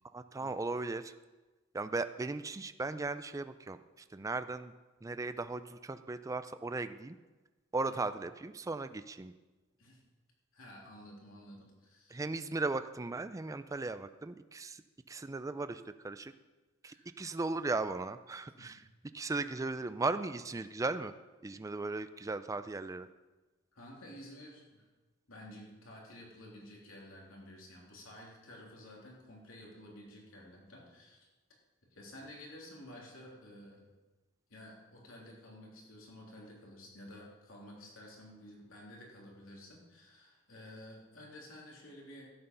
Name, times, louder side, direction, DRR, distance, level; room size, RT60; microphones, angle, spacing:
voice 1, 0.1-1.1 1.7-3.8 4.1-4.7 5.0-7.2 7.7-9.3 12.1-14.8 15.1-16.3 16.8-18.8 19.1-21.1 21.4-23.1, right 3 dB, 15° right, 11 dB, 0.3 m, -37 dB
voice 2, 10.5-12.2 16.8-17.1 18.6-18.8 23.7-24.9 25.3-31.3 31.9-33.8 34.5-42.3, left 1 dB, 75° left, -3 dB, 3.2 m, -52 dB
12.5 x 9.1 x 5.5 m, 1.2 s
head